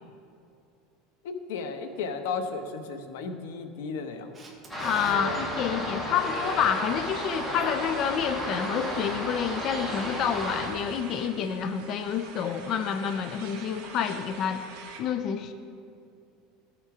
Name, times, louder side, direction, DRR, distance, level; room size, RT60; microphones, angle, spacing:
voice 1, 1.2-4.3, left 5 dB, 90° left, 6 dB, 0.9 m, -34 dB
Camera, 4.3-5.2 11.9-12.0, right 3 dB, 15° right, 1.1 m, -47 dB
voice 2, 4.7-14.6 15.0-15.5, left 8 dB, 35° left, 8 dB, 0.4 m, -28 dB
sound 1, 4.7-10.7, equal, 10° left, 1.6 m, -33 dB
sound 2, 6.1-15.0, right 4 dB, 60° right, 1.5 m, -45 dB
13.0 x 6.5 x 4.9 m, 2.5 s
cardioid pair, 175°, 0 cm